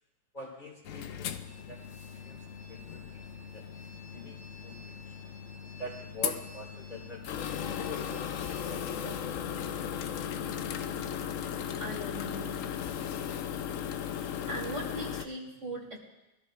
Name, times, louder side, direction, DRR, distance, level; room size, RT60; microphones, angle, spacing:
voice 1, 0.3-2.4 2.7-3.6 4.0-5.1 5.8-7.3 7.9-8.4 8.7-9.3, equal, 25° left, -3 dB, 2.3 m, -45 dB
sound 1, 0.8-15.3, left 8 dB, 65° left, 0.8 m, -37 dB
sound 2, 1.4-8.7, left 1 dB, 25° right, 1.6 m, -54 dB
voice 2, 11.8-12.6 14.5-16.0, right 1 dB, 45° right, -3 dB, 3.1 m, -39 dB
21.5 x 13.5 x 2.4 m, 0.98 s
omnidirectional pair, 1.8 m